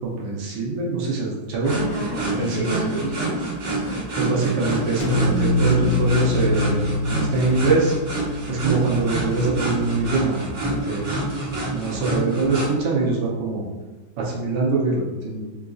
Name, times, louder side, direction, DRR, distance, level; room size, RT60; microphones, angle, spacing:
voice 1, 0.0-1.7 2.3-2.9 4.2-8.0 8.5-10.4 10.6-11.1 11.7-13.6 14.2-15.5, right 3 dB, 75° right, -3 dB, 1.3 m, -23 dB
voice 2, 1.6-3.9, right 1 dB, 50° left, -7 dB, 0.9 m, -31 dB
sound 1, 1.6-12.7, right 2 dB, 55° right, 1.4 m, -27 dB
sound 2, 5.0-9.2, left 2 dB, 90° left, 1.3 m, -24 dB
3.7 x 2.5 x 2.3 m, 1.2 s
omnidirectional pair, 1.9 m